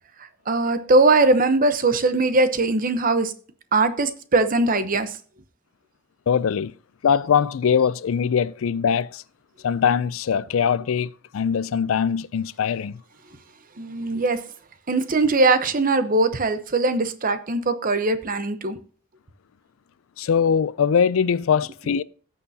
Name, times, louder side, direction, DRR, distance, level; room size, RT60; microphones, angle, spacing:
voice 1, 0.5-3.3 3.7-5.2 13.8-14.4 14.9-18.8, right 3 dB, 45° right, 0.9 m, -20 dB
voice 2, 6.3-6.7 7.0-9.2 9.6-13.0 20.2-22.0, left 7 dB, 80° left, 0.4 m, -22 dB
16.0 x 6.7 x 2.8 m
head